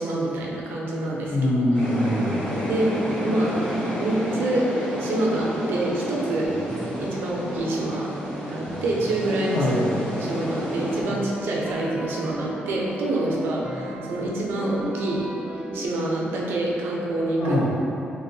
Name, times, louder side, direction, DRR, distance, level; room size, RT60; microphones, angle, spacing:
voice 1, 0.0-1.4 2.7-2.9 3.2-3.6 4.0-4.6 5.0-6.5 7.0-8.1 8.5-9.7 10.2-15.3 15.7-17.6, right 2 dB, 85° right, -3 dB, 0.5 m, -26 dB
voice 2, 1.3-2.3 9.5-9.9 17.4-17.7, left 1 dB, 65° left, -8 dB, 0.9 m, -23 dB
sound 1, 1.7-11.0, equal, 30° left, 1.3 m, -30 dB
sound 2, 6.4-15.9, equal, 25° right, 0.4 m, -36 dB
3.4 x 2.5 x 2.7 m, 2.8 s
wide cardioid pair, 165°, 4 cm